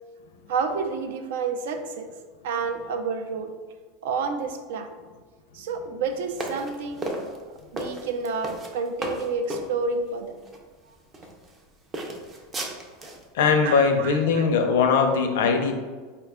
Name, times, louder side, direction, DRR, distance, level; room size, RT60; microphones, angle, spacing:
voice 1, 0.5-2.1 2.4-3.5 4.0-4.9 5.5-7.1 7.7-10.4 13.6-14.5, right 4 dB, 80° right, 7 dB, 0.4 m, -29 dB
sound 1, 6.3-9.7 10.4-10.6 11.1-11.6 11.9-13.2, right 1 dB, 15° right, 0.4 m, -34 dB
voice 2, 13.3-15.7, left 5 dB, 75° left, 5 dB, 0.5 m, -20 dB
4.4 x 2.2 x 3.5 m, 1.4 s
supercardioid pair, 170°, 0 cm